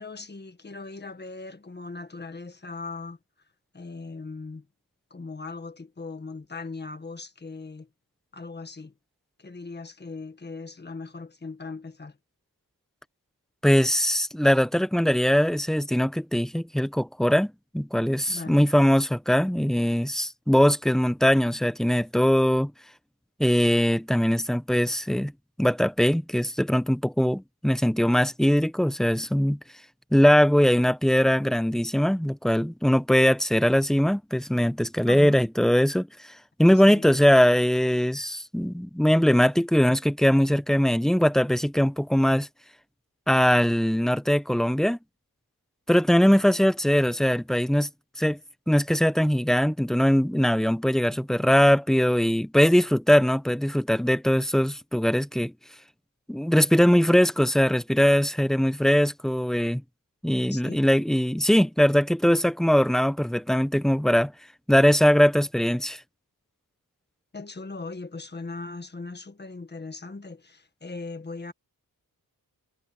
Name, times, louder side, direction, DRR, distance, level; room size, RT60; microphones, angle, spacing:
voice 1, 0.0-3.2 3.7-4.7 5.1-7.9 8.3-8.9 9.4-12.2 18.3-18.7 35.1-35.4 36.7-37.1 60.5-60.9 67.3-71.5, left 3 dB, 30° left, 1.6 m, -39 dB
voice 2, 13.6-22.7 23.4-25.3 25.6-29.6 30.1-36.1 36.6-42.5 43.3-45.0 45.9-47.9 48.2-48.4 48.7-55.5 56.3-59.8 60.2-64.3 64.7-66.0, equal, ahead, 0.8 m, -21 dB
wide cardioid pair, 145°, 36 cm